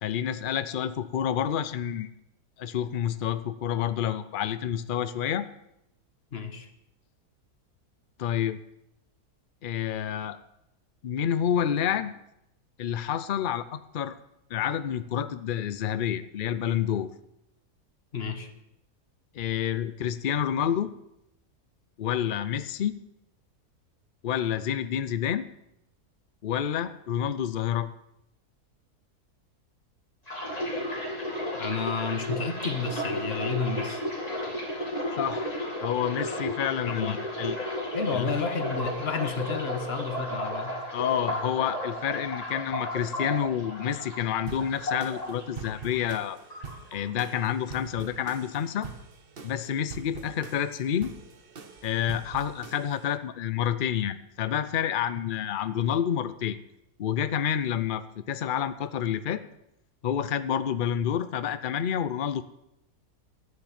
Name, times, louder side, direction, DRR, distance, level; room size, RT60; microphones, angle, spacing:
voice 1, 0.0-2.1 2.6-5.5 8.2-8.6 9.6-10.4 11.0-12.1 12.8-14.1 14.5-17.1 19.3-20.9 22.0-23.0 24.2-25.5 26.4-27.9 35.2-35.5 35.8-37.6 38.1-38.2 40.9-46.4 46.9-48.9 49.4-51.1 51.8-56.6 57.0-59.4 60.0-62.4, left 9 dB, 85° left, 14 dB, 0.4 m, -29 dB
voice 2, 6.3-6.7 18.1-18.5 31.5-34.0 36.9-37.2 37.9-40.8, left 5 dB, 40° left, 8 dB, 1.4 m, -31 dB
sound 1, 30.3-46.2 46.5-47.4 47.7-48.0, left 1 dB, 25° left, 2.8 m, -33 dB
sound 2, 44.5-53.2, right 5 dB, 40° right, 1.1 m, -44 dB
12.0 x 9.7 x 7.4 m, 0.82 s
omnidirectional pair, 1.7 m